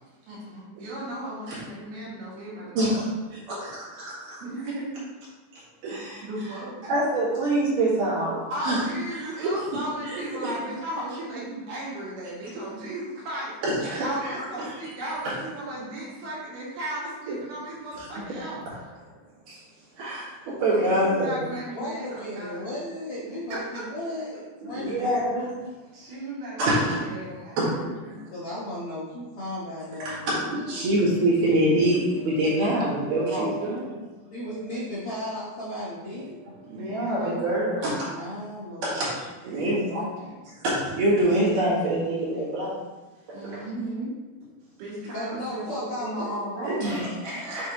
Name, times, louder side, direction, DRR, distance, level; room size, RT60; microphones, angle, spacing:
voice 1, 0.3-3.0 4.4-4.9 5.8-6.9 8.5-13.5 14.0-18.6 20.7-22.7 23.5-23.8 24.7-24.9 25.9-28.1 33.3-34.0 36.7-37.4 39.4-40.4 43.3-44.1 44.8-46.8, right 1 dB, 75° right, -6 dB, 3.6 m, -35 dB
voice 2, 2.7-4.4 5.8-6.2 6.8-8.8 9.4-9.5 10.0-10.5 13.6-14.9 15.2-15.4 17.3-17.4 18.0-18.1 18.7-18.8 19.5-19.6 20.0-21.5 24.6-25.5 26.6-27.2 27.6-27.8 28.0-28.1 30.0-33.8 36.7-38.1 38.8-39.8 40.6-42.7 43.3-43.6 46.6-47.7, right 1 dB, 60° right, -8 dB, 3.4 m, -26 dB
voice 3, 21.7-25.1 28.3-30.4 34.3-36.3 38.1-39.2 39.6-40.1 45.1-46.4, left 1 dB, 75° left, -8 dB, 1.3 m, -35 dB
8.1 x 4.0 x 3.0 m, 1.2 s
omnidirectional pair, 4.5 m